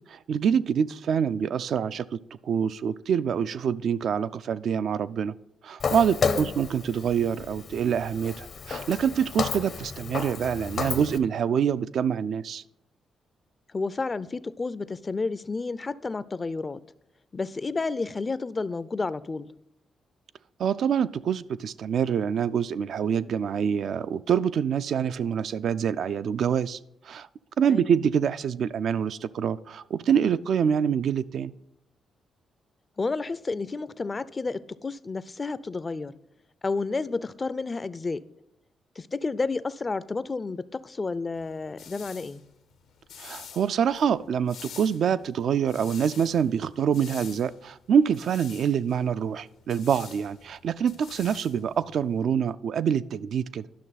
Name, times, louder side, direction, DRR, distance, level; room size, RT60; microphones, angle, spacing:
voice 1, 0.1-2.1 2.4-5.3 5.6-12.6 20.6-26.8 27.1-27.3 27.6-31.5 43.2-53.7, right 7 dB, 70° right, 0.3 m, -26 dB
Walk footsteps, 5.8-11.2, left 5 dB, 65° left, 0.7 m, -32 dB
voice 2, 6.2-6.5 13.7-16.8 17.3-19.5 27.7-28.0 33.0-36.1 36.6-38.2 39.0-42.4, left 3 dB, 35° left, 0.4 m, -31 dB
sound 1, 41.4-52.3, left 7 dB, 90° left, 1.0 m, -48 dB
11.0 x 6.1 x 4.1 m
supercardioid pair, 65°, 0 cm